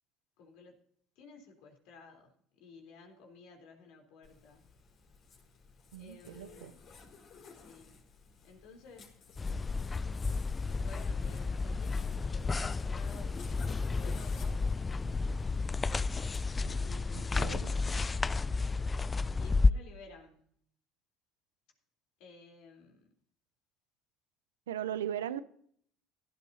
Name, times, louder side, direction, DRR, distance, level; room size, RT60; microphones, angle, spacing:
voice 1, 0.4-0.8 1.2-4.7 6.0-6.8 7.5-8.0 8.4-9.1 10.6-14.7 16.5-17.5 19.4-20.5 22.2-23.1, left 3 dB, 70° left, 3.7 m, -54 dB
Zipper (clothing), 4.2-16.4, left 4 dB, 55° left, 4.7 m, -55 dB
voice 2, 5.9-6.7 17.1-17.7 24.7-25.4, right 10 dB, 90° right, 0.7 m, -38 dB
sound 1, 9.4-19.7, left 4 dB, 25° left, 0.4 m, -31 dB
17.5 x 13.0 x 2.8 m
hypercardioid pair, 75°, 0 cm